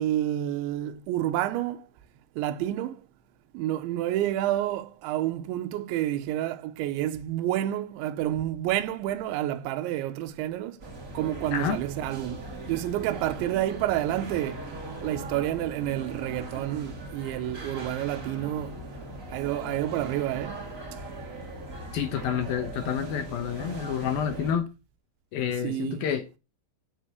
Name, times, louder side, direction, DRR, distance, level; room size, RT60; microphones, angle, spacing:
voice 1, 0.0-1.9 2.4-3.0 3.5-10.8 11.1-14.7 15.0-18.8 19.3-20.6 25.6-26.1, right 13 dB, 80° right, 3.3 m, -29 dB
sound 1, 10.8-24.5, right 2 dB, 25° right, 1.9 m, -39 dB
voice 2, 21.9-24.7 25.3-26.2, left 8 dB, 70° left, 2.3 m, -29 dB
9.0 x 7.5 x 8.2 m
omnidirectional pair, 5.4 m